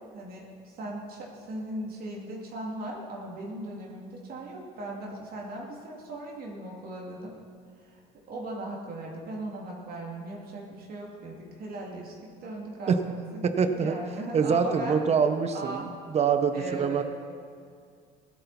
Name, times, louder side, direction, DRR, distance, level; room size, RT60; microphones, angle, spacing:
voice 1, 0.1-7.3 7.8-8.0 8.3-13.4 13.8-15.0 15.5-15.9 16.5-17.0, right 1 dB, 50° right, -2 dB, 2.6 m, -38 dB
voice 2, 13.4-14.0 14.3-15.8 16.1-17.0, right 6 dB, 35° right, 8 dB, 0.9 m, -25 dB
16.0 x 12.5 x 4.2 m, 2.2 s
cardioid pair, 110°, 19 cm